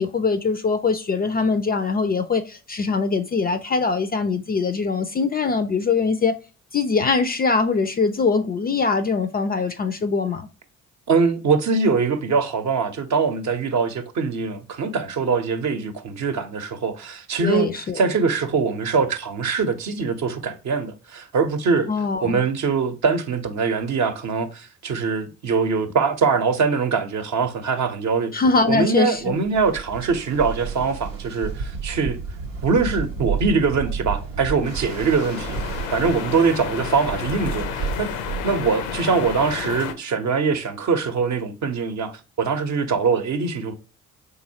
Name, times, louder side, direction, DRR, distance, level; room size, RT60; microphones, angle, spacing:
voice 1, 0.0-6.3 6.7-10.5 17.4-18.0 21.9-22.4 28.3-29.4, left 4 dB, 25° left, 0.4 m, -22 dB
voice 2, 11.1-21.9 22.2-28.4 28.7-32.2 32.6-38.1 38.4-43.7, right 5 dB, 50° right, 0.7 m, -23 dB
Ocean, 29.3-39.2, right 5 dB, 80° right, 0.6 m, -32 dB
sound 1, 34.6-39.9, left 8 dB, 75° left, 0.5 m, -31 dB
3.8 x 2.7 x 2.7 m
hypercardioid pair, 45°, 37 cm